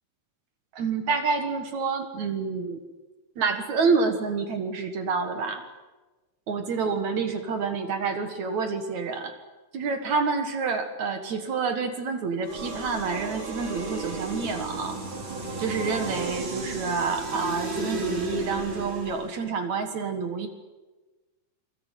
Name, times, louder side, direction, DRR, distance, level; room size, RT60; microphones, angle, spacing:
voice 1, 0.7-2.8 3.4-5.6 6.5-9.3 9.7-15.0 15.6-20.5, right 4 dB, 55° right, 8 dB, 2.2 m, -28 dB
sound 1, 12.4-19.4, right 2 dB, 30° right, 3.5 m, -34 dB
28.0 x 21.5 x 9.2 m, 1.2 s
omnidirectional pair, 5.4 m